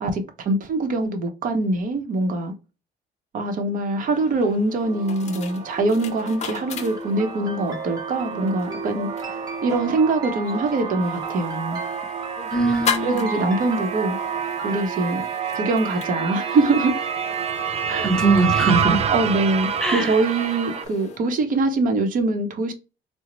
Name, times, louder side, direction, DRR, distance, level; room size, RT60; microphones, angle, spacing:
voice 1, 0.0-2.5 3.3-11.8 13.0-14.2 14.6-15.2 15.5-16.9 17.9-18.1 19.1-22.7, right 2 dB, 55° right, 0.8 m, -23 dB
voice 2, 3.5-3.9 12.5-13.3 18.0-19.0 19.8-20.2, right 3 dB, 5° left, 0.9 m, -22 dB
sound 1, 4.1-21.2, left 6 dB, 40° left, 0.5 m, -37 dB
sound 2, 4.8-20.8, right 7 dB, 40° right, 0.4 m, -28 dB
sound 3, 6.8-14.9, right 2 dB, 20° right, 1.0 m, -39 dB
3.8 x 2.1 x 3.0 m
cardioid pair, 110°, 17 cm